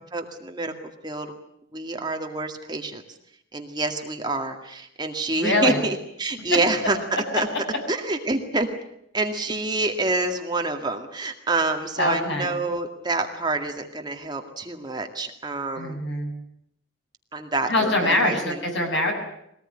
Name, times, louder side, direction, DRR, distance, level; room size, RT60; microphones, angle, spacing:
voice 1, 0.1-0.7 1.0-1.3 1.7-3.0 3.5-7.0 7.3-7.5 7.9-8.7 9.1-16.0 17.3-17.9 18.2-18.6, right 2 dB, 20° right, 4 dB, 2.0 m, -27 dB
voice 2, 5.3-5.8 12.0-12.5 15.8-16.3 17.7-19.1, left 1 dB, 65° left, 3 dB, 7.3 m, -23 dB
23.0 x 18.5 x 10.0 m, 0.76 s
head